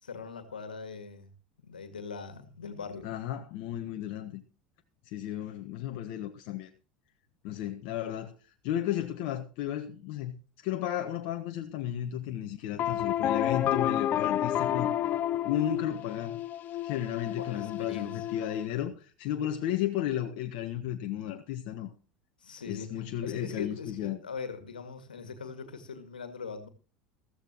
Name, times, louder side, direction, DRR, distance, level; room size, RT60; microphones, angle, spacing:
voice 1, 0.0-1.3 1.6-3.1 17.4-18.4 18.7-18.8 22.4-22.9 23.2-26.7, left 5 dB, 80° left, 2.1 m, -41 dB
voice 2, 3.0-4.4 5.1-6.7 7.4-8.3 8.6-10.4 10.6-14.9 15.4-16.4 16.8-21.9 22.7-24.2, left 11 dB, 55° left, 1.3 m, -33 dB
sound 1, 12.8-18.7, left 11 dB, 40° left, 0.5 m, -30 dB
14.5 x 14.5 x 3.0 m
figure-of-eight pair, 75°, 5 cm